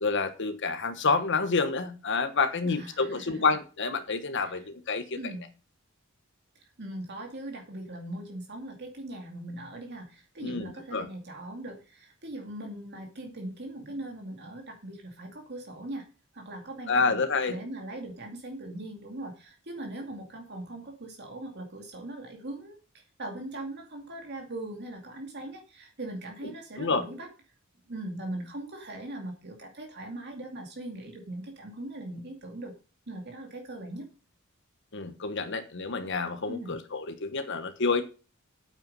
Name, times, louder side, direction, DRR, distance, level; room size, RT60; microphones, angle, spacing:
voice 1, 0.0-5.2 10.4-11.1 16.9-17.5 26.8-27.0 34.9-38.0, left 4 dB, 60° left, 8 dB, 1.2 m, -28 dB
voice 2, 2.6-3.5 4.3-4.7 5.2-5.5 6.6-16.1 16.3-17.2 17.5-27.3 27.9-32.7 33.1-34.1 36.5-36.8, right 1 dB, 55° right, 2 dB, 2.4 m, -40 dB
9.3 x 9.0 x 5.5 m, 0.34 s
head